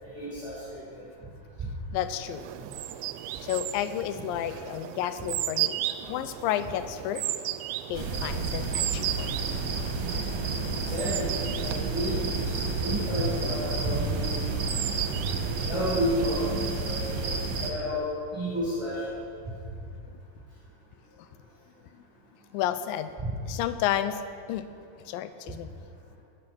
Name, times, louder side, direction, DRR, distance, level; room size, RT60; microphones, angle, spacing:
voice 1, 0.0-1.0 4.1-4.2 4.5-4.6 10.8-14.4 15.7-16.4 16.8-17.3 17.6-18.0 18.3-19.0 23.2-23.3, equal, 5° right, -9 dB, 4.1 m, -31 dB
voice 2, 1.9-2.5 3.4-5.8 6.1-7.2 7.9-9.3 22.5-23.1 23.5-24.2 24.5-24.7 25.0-25.7, left 11 dB, 85° left, 11 dB, 2.1 m, -31 dB
sound 1, 2.2-17.1, right 14 dB, 85° right, 2.5 m, -36 dB
sound 2, 7.9-17.7, right 3 dB, 55° right, 2.5 m, -31 dB
20.5 x 8.6 x 6.1 m, 2.5 s
omnidirectional pair, 4.6 m